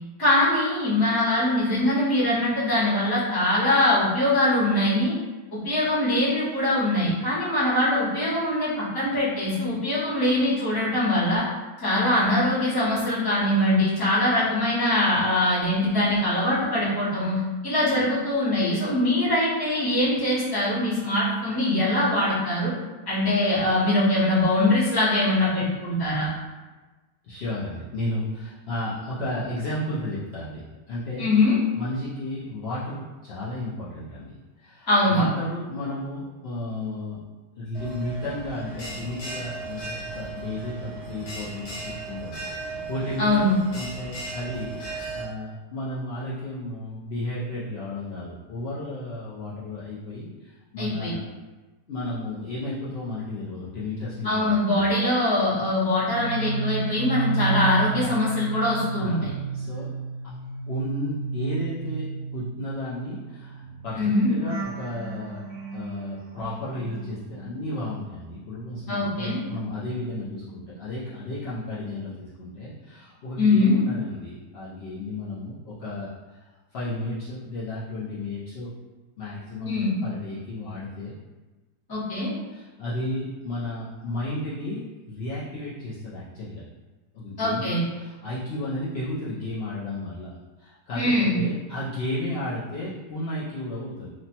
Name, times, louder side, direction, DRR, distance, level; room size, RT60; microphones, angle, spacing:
voice 1, 0.2-5.1 5.5-11.4 11.8-22.7 23.1-26.3 31.2-31.6 34.9-35.2 43.2-43.6 50.8-51.1 54.2-59.3 64.0-64.3 68.9-69.4 73.4-73.8 79.6-79.9 81.9-82.3 87.4-87.8 90.9-91.4, left 1 dB, 25° left, -10 dB, 0.5 m, -22 dB
voice 2, 27.2-30.6 30.9-31.3 31.7-37.2 37.6-43.4 43.7-44.7 45.1-51.2 51.9-54.9 58.0-58.2 59.0-59.9 60.7-62.1 62.3-65.4 65.7-76.4 76.7-78.7 79.2-79.7 80.0-81.1 82.5-86.6 87.1-90.3 90.6-94.1, left 1 dB, 85° left, -10 dB, 0.5 m, -33 dB
Bell, 37.7-45.2, right 3 dB, 60° left, 0.9 m, -36 dB
sound 1, 56.0-68.2 68.5-70.6 70.9-71.3, right 5 dB, 65° right, 0.9 m, -33 dB
3.1 x 2.0 x 2.7 m, 1.2 s
omnidirectional pair, 1.8 m